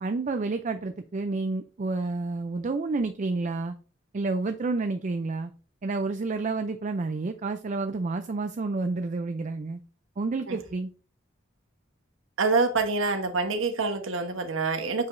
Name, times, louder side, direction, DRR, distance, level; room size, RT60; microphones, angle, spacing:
voice 1, 0.0-3.7 4.1-5.5 5.8-9.8 10.2-10.9, right 3 dB, 40° right, 8 dB, 0.4 m, -29 dB
voice 2, 12.4-15.1, right 4 dB, 80° right, 6 dB, 1.1 m, -26 dB
8.2 x 4.9 x 2.6 m, 0.39 s
head